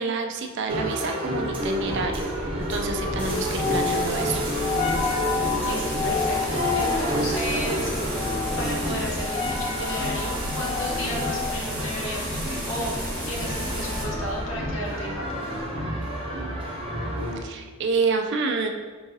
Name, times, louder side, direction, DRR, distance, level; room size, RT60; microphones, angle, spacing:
voice 1, 0.0-2.3 2.6-4.4 17.4-18.7, right 4 dB, 55° right, 4 dB, 0.4 m, -28 dB
sound 1, 0.7-17.4, equal, 25° right, 0.7 m, -30 dB
sound 2, 1.5-14.8, left 3 dB, 25° left, 0.4 m, -31 dB
sound 3, 3.2-14.0, equal, 10° left, 1.0 m, -34 dB
voice 2, 5.6-7.9 8.6-12.9 13.2-16.1, equal, 65° left, -3 dB, 1.0 m, -34 dB
4.7 x 3.9 x 2.6 m, 1.4 s
head